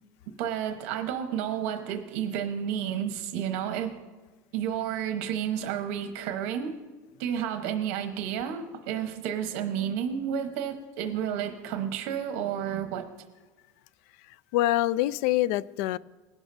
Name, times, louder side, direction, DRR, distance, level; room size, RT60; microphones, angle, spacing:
voice 1, 0.4-4.0 4.5-6.7 7.2-13.1, right 9 dB, 75° right, 6 dB, 1.0 m, -31 dB
voice 2, 14.2-16.0, left 15 dB, 75° left, 20 dB, 0.4 m, -26 dB
20.0 x 11.0 x 2.6 m, 1.3 s
cardioid pair, 160°, 8 cm